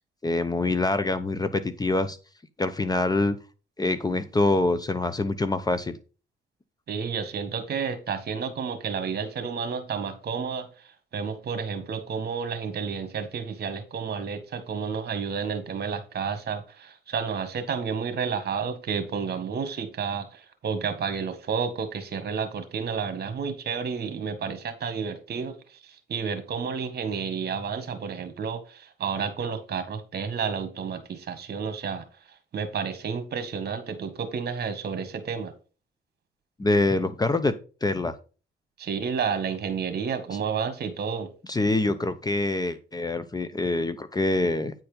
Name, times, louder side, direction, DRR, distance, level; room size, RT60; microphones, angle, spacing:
voice 1, 0.2-2.2 2.6-3.4 3.8-6.0 36.6-37.5 37.8-38.1 41.5-44.7, left 2 dB, 20° left, 0.8 m, -25 dB
voice 2, 6.9-10.7 11.1-25.5 26.1-32.0 32.5-35.5 38.8-41.3, right 6 dB, 55° right, 1.7 m, -31 dB
9.3 x 4.4 x 5.1 m
cardioid pair, 90°, 20 cm